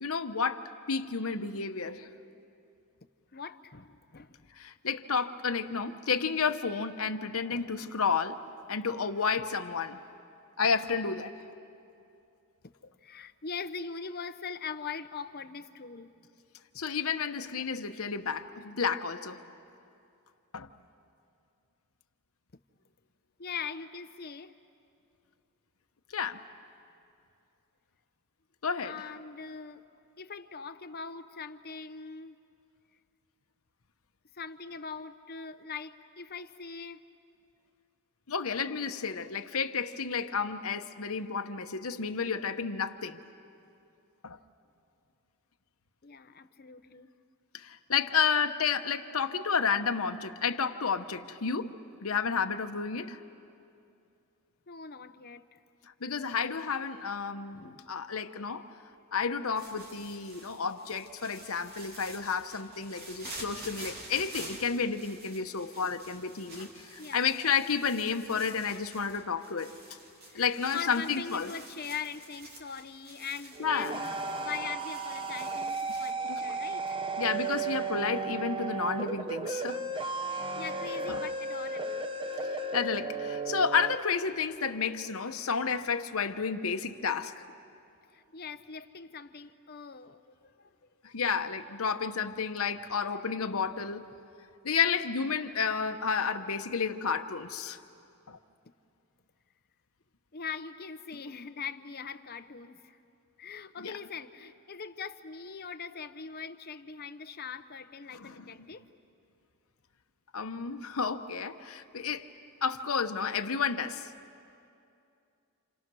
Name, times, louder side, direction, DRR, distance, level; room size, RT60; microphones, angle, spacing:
voice 1, 0.0-2.1 4.6-8.4 8.7-10.0 10.6-11.3 16.7-19.4 20.5-20.7 26.1-26.4 28.6-29.1 38.3-43.2 44.2-44.4 47.5-53.2 56.0-58.8 59.1-69.7 70.3-71.5 73.6-74.0 76.2-76.4 77.2-79.8 81.1-81.2 82.5-87.5 91.0-94.1 94.6-97.8 98.3-98.4 103.8-103.9 108.1-108.5 110.3-112.3 112.6-114.1, left 6 dB, 70° left, 1.0 m, -31 dB
voice 2, 3.3-4.4 7.4-7.9 8.7-8.8 12.6-12.7 13.0-16.1 23.4-24.5 28.8-29.8 30.2-32.4 34.3-37.0 46.0-47.1 54.7-55.6 57.5-57.9 67.0-67.3 70.3-77.0 80.3-82.1 88.1-90.8 91.1-91.2 100.3-103.0 103.4-108.8, left 6 dB, 45° left, 0.8 m, -41 dB
sound 1, 59.5-76.1, right 1 dB, 45° right, 2.8 m, -48 dB
sound 2, 73.5-84.0, right 3 dB, 25° right, 0.8 m, -34 dB
29.5 x 28.5 x 6.3 m
head